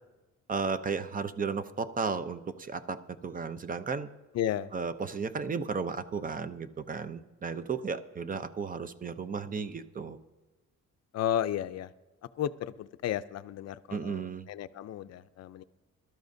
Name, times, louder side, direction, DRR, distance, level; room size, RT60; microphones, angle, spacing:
voice 1, 0.5-4.1 4.7-10.2 13.9-14.5, right 5 dB, 30° right, 12 dB, 0.6 m, -34 dB
voice 2, 4.3-4.7 11.1-11.9 12.3-15.6, left 11 dB, 55° left, 13 dB, 0.5 m, -33 dB
21.0 x 12.5 x 2.7 m, 1.1 s
cardioid pair, 125°, 30 cm